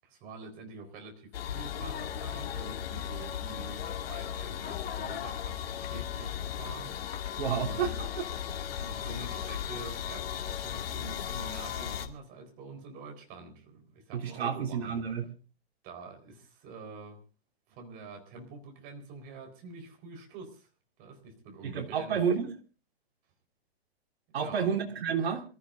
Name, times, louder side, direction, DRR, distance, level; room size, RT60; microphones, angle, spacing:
voice 1, 0.0-8.0 8.7-15.0 15.8-17.2 17.7-20.7 21.0-22.2 24.4-24.7, right 3 dB, 30° right, 5 dB, 4.3 m, -46 dB
sound 1, 1.3-12.1, left 9 dB, 65° left, 2.4 m, -36 dB
voice 2, 7.4-8.1 14.1-15.3 21.6-22.5 24.3-25.4, right 7 dB, 70° right, 1 dB, 3.5 m, -30 dB
26.5 x 14.5 x 2.6 m, 0.34 s
hypercardioid pair, 155°, 32 cm